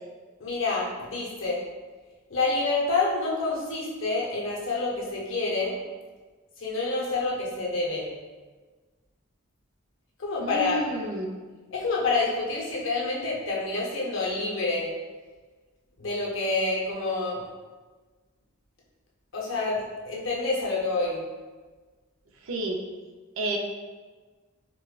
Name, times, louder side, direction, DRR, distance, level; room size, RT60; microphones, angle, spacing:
voice 1, 0.4-1.6 2.3-5.8 6.6-8.1 10.2-10.8 11.7-14.9 16.0-17.4 19.3-21.2, left 3 dB, 65° left, -3 dB, 0.7 m, -28 dB
voice 2, 10.4-11.3 22.4-22.8 23.4-23.6, right 2 dB, 70° right, 1 dB, 0.5 m, -30 dB
4.4 x 2.1 x 2.4 m, 1.3 s
head